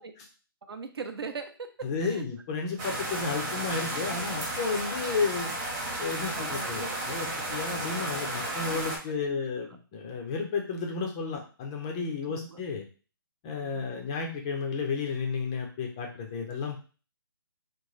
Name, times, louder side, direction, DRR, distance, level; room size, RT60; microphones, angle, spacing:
voice 1, 0.7-2.3 6.3-7.5 8.6-8.9 9.3-9.5 12.3-12.6 13.6-13.9, right 5 dB, 85° right, 7 dB, 0.7 m, -41 dB
voice 2, 1.8-5.5 6.0-12.8 13.4-16.8, left 5 dB, 10° left, 1 dB, 0.3 m, -32 dB
sound 1, 2.8-9.0, right 1 dB, 15° right, 0.7 m, -33 dB
3.7 x 2.2 x 3.0 m, 0.36 s
hypercardioid pair, 165°, 12 cm